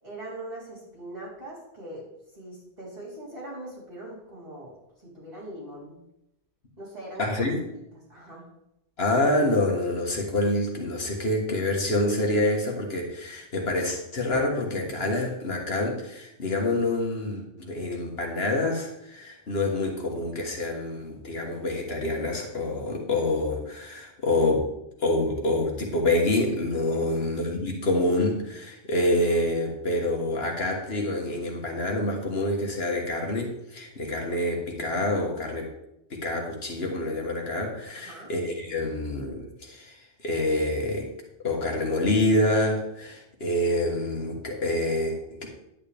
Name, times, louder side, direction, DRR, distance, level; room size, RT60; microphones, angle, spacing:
voice 1, 0.0-2.1 2.3-4.7 5.0-5.9 6.8-8.4 27.1-27.3 37.9-38.3, right 1 dB, 35° right, -8 dB, 4.2 m, -41 dB
voice 2, 7.2-7.6 9.0-24.7 25.0-35.7 36.1-40.0 40.2-41.1 41.4-45.5, left 1 dB, 60° left, 0 dB, 1.7 m, -27 dB
10.0 x 9.4 x 3.5 m, 0.85 s
omnidirectional pair, 1.2 m